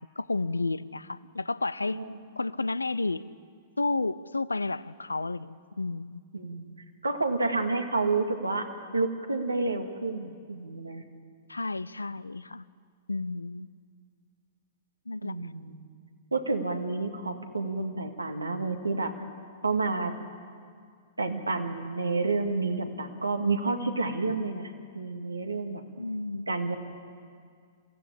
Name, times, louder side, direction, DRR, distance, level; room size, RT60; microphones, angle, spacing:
voice 1, 0.0-2.0 2.4-3.2 3.8-6.2 11.5-12.6 13.1-13.7 15.1-15.4 26.0-26.6, left 3 dB, 90° left, 18 dB, 0.6 m, -31 dB
voice 2, 6.3-6.7 7.0-8.7 8.9-11.0 15.2-15.9 16.3-19.1 19.6-20.1 21.2-25.8 26.5-26.8, right 3 dB, 90° right, 5 dB, 2.0 m, -29 dB
27.5 x 16.0 x 8.5 m, 2.1 s
figure-of-eight pair, 110°, 0 cm